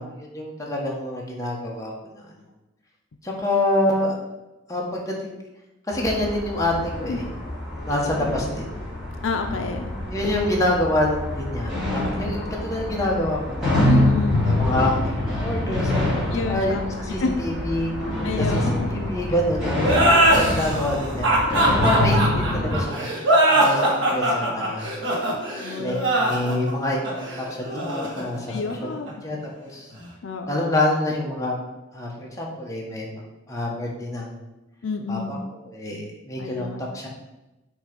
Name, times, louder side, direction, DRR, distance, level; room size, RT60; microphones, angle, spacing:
voice 1, 0.0-2.3 3.2-4.1 4.7-5.4 5.9-7.2 7.7-8.7 10.1-13.8 14.4-17.9 18.4-18.6 18.9-21.3 21.8-24.9 25.8-28.5 28.8-28.9 29.2-29.9 30.5-31.6 31.9-33.2 33.5-34.3 35.1-35.4 35.7-37.1, left 1 dB, 15° left, -2 dB, 1.1 m, -27 dB
sound 1, 5.9-22.8, left 1 dB, 5° right, 2.0 m, -26 dB
voice 2, 9.2-9.9 13.9-14.5 16.3-16.8 17.2-17.3 18.2-19.0 25.5-26.1 28.5-29.1 30.2-30.8 34.8-35.3 36.4-36.8, left 3 dB, 75° left, 5 dB, 0.5 m, -28 dB
sound 2, 19.8-29.1, right 1 dB, 75° right, 1.7 m, -21 dB
6.3 x 3.0 x 5.2 m, 1.0 s
head